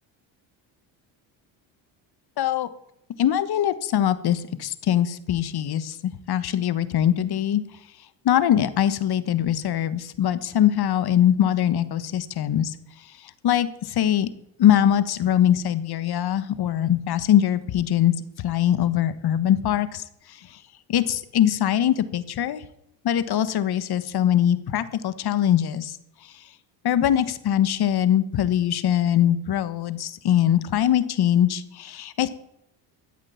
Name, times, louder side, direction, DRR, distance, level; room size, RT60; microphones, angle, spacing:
voice 1, 2.4-2.7 3.2-6.0 6.3-7.6 8.2-12.7 13.4-14.3 14.6-18.1 18.4-20.0 20.9-22.6 23.0-26.0 26.8-32.3, left 10 dB, 50° left, 14 dB, 1.2 m, -22 dB
13.0 x 8.2 x 7.1 m, 0.79 s
supercardioid pair, 85°, 48 cm